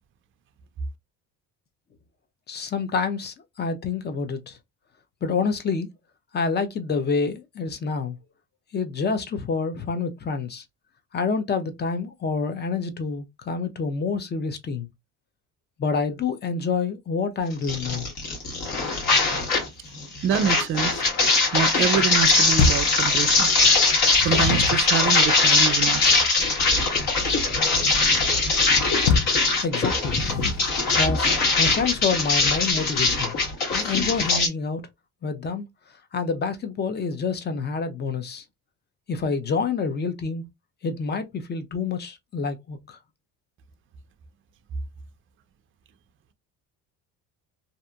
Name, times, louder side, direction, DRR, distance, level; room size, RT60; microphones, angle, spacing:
voice 1, 2.5-4.6 5.2-5.9 6.3-8.2 8.7-10.6 11.1-14.9 15.8-18.1 29.6-30.2 31.0-31.3 31.6-33.3 33.7-34.8 35.2-35.7 36.1-38.4 39.1-40.4 40.8-43.0, left 5 dB, 30° left, 0.6 m, -27 dB
sound 1, 17.6-19.7 19.9-34.5, left 3 dB, 65° left, 1.5 m, -21 dB
voice 2, 20.2-21.0 21.5-23.5 24.2-26.1, right 8 dB, 35° right, 0.4 m, -26 dB
sound 2, 22.6-23.0 23.9-24.9 29.1-29.4 30.0-30.8, left 4 dB, 80° left, 0.6 m, -24 dB
2.7 x 2.5 x 2.3 m
cardioid pair, 105°, 36 cm